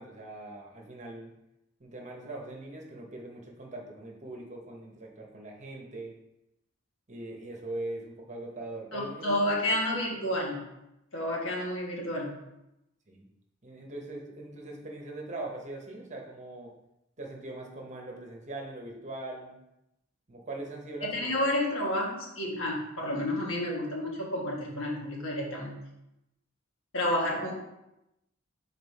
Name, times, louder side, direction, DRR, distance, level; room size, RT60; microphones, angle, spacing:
voice 1, 0.0-1.4 1.8-6.2 7.1-9.4 10.2-10.5 13.1-13.3 13.6-16.7 17.2-19.6 20.3-21.4, right 2 dB, 35° right, 0 dB, 1.1 m, -41 dB
voice 2, 8.9-10.7 11.1-12.4 21.0-25.8 26.9-27.6, left 1 dB, 80° left, -2 dB, 1.5 m, -30 dB
5.4 x 4.3 x 4.2 m, 0.88 s
head